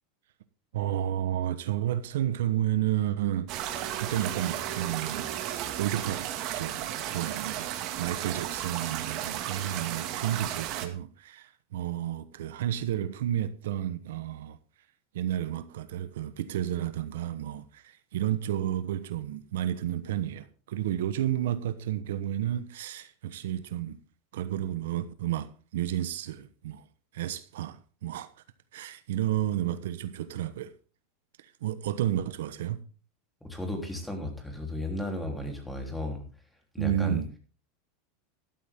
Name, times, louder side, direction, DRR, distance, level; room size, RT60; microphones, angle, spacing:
voice 1, 0.7-5.3 5.8-6.2 6.5-6.8 7.0-7.7 8.0-14.6 15.1-24.0 24.3-26.8 27.1-28.3 28.7-30.7 31.4-32.8 36.8-37.3, right 11 dB, 85° right, 1.1 m, -31 dB
sound 1, 3.5-10.9, right 11 dB, 50° right, 2.1 m, -34 dB
voice 2, 33.4-36.2 36.7-37.2, left 1 dB, 5° left, 3.5 m, -34 dB
13.0 x 13.0 x 3.7 m
supercardioid pair, 135°, 0 cm